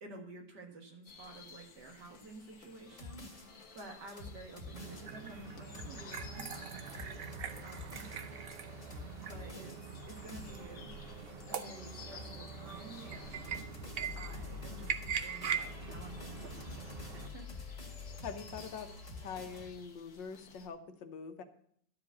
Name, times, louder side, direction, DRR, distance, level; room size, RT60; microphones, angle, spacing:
voice 1, 0.0-7.0 7.6-8.1 9.3-10.9 11.5-13.6 14.1-17.6, right 2 dB, 70° right, 3 dB, 2.3 m, -51 dB
sound 1, 1.1-20.7, left 5 dB, 55° left, 1.6 m, -56 dB
sound 2, 2.9-19.7, left 3 dB, 25° left, 2.0 m, -49 dB
sound 3, 4.7-17.3, right 7 dB, 85° right, 0.5 m, -42 dB
voice 2, 18.2-18.9 19.2-21.4, left 6 dB, 85° left, 7 dB, 1.7 m, -44 dB
12.0 x 5.0 x 8.4 m, 0.66 s
omnidirectional pair, 1.9 m